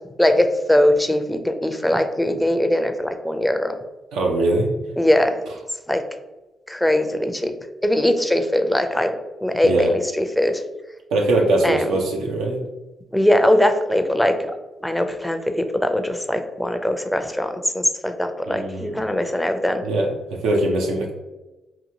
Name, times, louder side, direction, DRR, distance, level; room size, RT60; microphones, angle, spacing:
voice 1, 0.2-3.7 5.0-5.3 5.9-6.0 6.7-7.5 7.8-9.1 9.4-10.6 11.6-11.9 13.1-14.5 14.8-19.8, left 1 dB, 5° left, 7 dB, 0.4 m, -20 dB
voice 2, 4.1-4.7 9.6-9.9 11.1-12.6 18.5-19.1 19.8-20.1 20.4-21.1, right 2 dB, 90° right, 0 dB, 0.4 m, -21 dB
2.9 x 2.3 x 2.6 m, 1.1 s
supercardioid pair, 60°, 0 cm